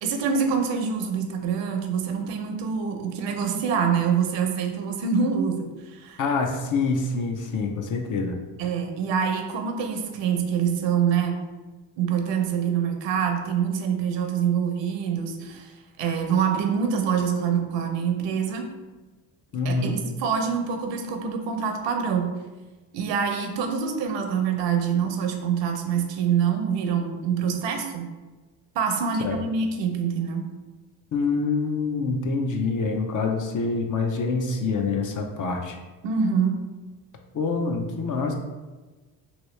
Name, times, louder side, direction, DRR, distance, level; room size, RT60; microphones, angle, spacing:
voice 1, 0.0-6.2 8.6-11.4 12.0-18.7 19.6-22.3 22.9-28.1 28.7-30.4 36.0-36.6, right 7 dB, 70° right, 4 dB, 0.7 m, -25 dB
voice 2, 6.2-8.4 19.5-20.0 29.2-29.4 31.1-35.8 37.3-38.3, left 4 dB, 45° left, 3 dB, 0.5 m, -26 dB
2.9 x 2.7 x 3.1 m, 1.2 s
cardioid pair, 85°, 46 cm